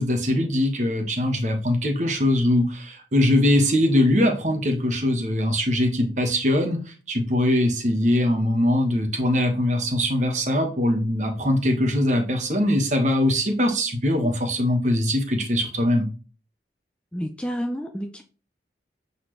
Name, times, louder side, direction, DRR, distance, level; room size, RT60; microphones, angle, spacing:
voice 1, 0.0-6.8 7.1-16.1, left 1 dB, 40° right, 4 dB, 1.2 m, -22 dB
voice 2, 17.1-18.2, equal, 5° left, 4 dB, 0.5 m, -30 dB
7.9 x 4.1 x 3.3 m, 0.36 s
head